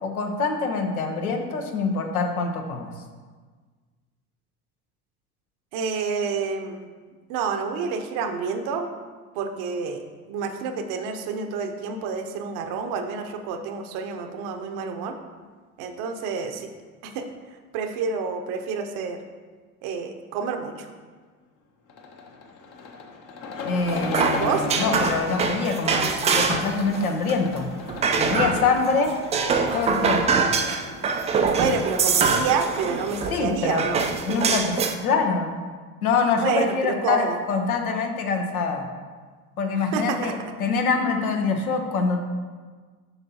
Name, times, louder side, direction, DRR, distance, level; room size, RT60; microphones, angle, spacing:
voice 1, 0.0-2.9 23.6-27.7 28.2-29.1 29.7-30.4 33.3-33.8 34.2-34.8 35.0-35.5 36.0-38.8 39.6-42.2, left 4 dB, 75° left, 3 dB, 0.9 m, -25 dB
voice 2, 5.7-6.9 7.3-8.9 9.4-15.2 15.8-16.7 17.0-17.3 17.7-19.2 19.8-20.9 24.3-24.7 31.6-34.0 36.4-37.4 39.7-40.3, right 5 dB, 50° right, 6 dB, 0.8 m, -28 dB
sound 1, 21.9-34.2, left 4 dB, 45° left, 1.0 m, -37 dB
sound 2, 23.8-26.8 27.1-28.8 29.1-33.4 33.8-35.0, right 5 dB, 15° right, 0.4 m, -24 dB
7.9 x 5.6 x 2.8 m, 1.5 s
figure-of-eight pair, 65°, 44 cm